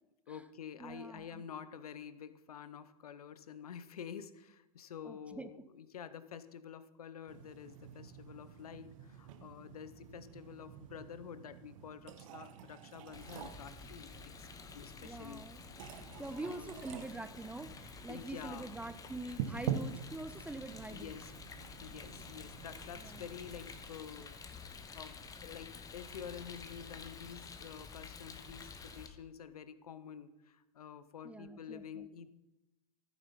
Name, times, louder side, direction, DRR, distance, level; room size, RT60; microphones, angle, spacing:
voice 1, 0.3-14.5 14.7-15.5 16.1-16.8 18.1-18.8 20.9-21.5 21.8-32.3, left 8 dB, 70° left, 14 dB, 0.8 m, -49 dB
voice 2, 0.8-1.4 5.0-5.5 14.9-15.6 16.2-21.1 23.0-23.3 31.2-32.1, right 2 dB, 5° right, 11 dB, 0.5 m, -45 dB
sound 1, 7.3-23.6, right 8 dB, 55° right, 1.1 m, -47 dB
Rain, 13.1-29.1, left 5 dB, 15° left, 1.1 m, -50 dB
14.5 x 9.3 x 4.2 m, 0.99 s
figure-of-eight pair, 95°, 20 cm